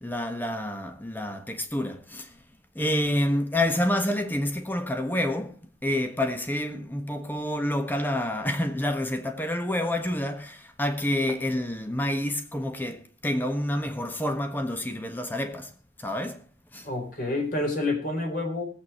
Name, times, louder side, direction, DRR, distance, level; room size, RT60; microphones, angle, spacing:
voice 1, 0.0-2.2 2.7-5.5 5.8-15.7 16.0-16.4 16.7-16.8, left 1 dB, 10° left, 1.4 m, -28 dB
voice 2, 16.8-18.6, left 2 dB, 50° left, 4.7 m, -28 dB
19.5 x 8.4 x 4.5 m
head